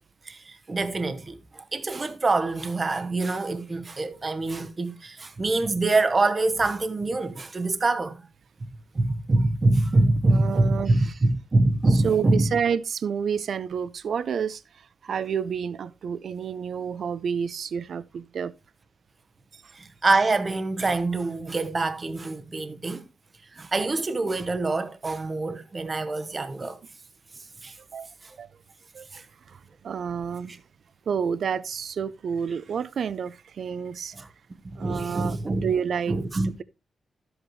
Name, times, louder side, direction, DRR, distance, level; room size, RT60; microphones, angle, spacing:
voice 1, 0.3-8.2 8.9-12.5 19.7-23.0 23.5-26.8 27.6-27.7 29.1-29.2 34.1-34.3 34.6-35.7 36.1-36.5, right 2 dB, 25° right, 0.9 m, -25 dB
voice 2, 10.3-11.1 11.9-18.5 19.5-19.7 26.6-26.7 27.9-28.1 28.4-28.5 28.9-30.6 31.1-34.2 34.8-36.2 36.4-36.6, right 7 dB, 55° right, 0.5 m, -30 dB
12.5 x 7.9 x 3.1 m
wide cardioid pair, 165°, 0 cm